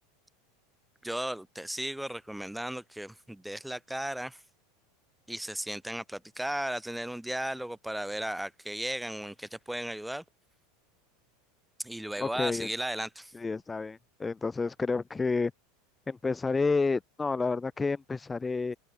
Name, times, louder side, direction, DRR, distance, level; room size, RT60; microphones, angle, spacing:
voice 1, 1.0-4.4 5.3-10.2 11.8-13.3, right 1 dB, ahead, 1.6 m, -35 dB
voice 2, 12.2-12.7 13.3-15.5 16.1-18.8, left 4 dB, 15° left, 0.6 m, -30 dB
open air
supercardioid pair, 130°, 0 cm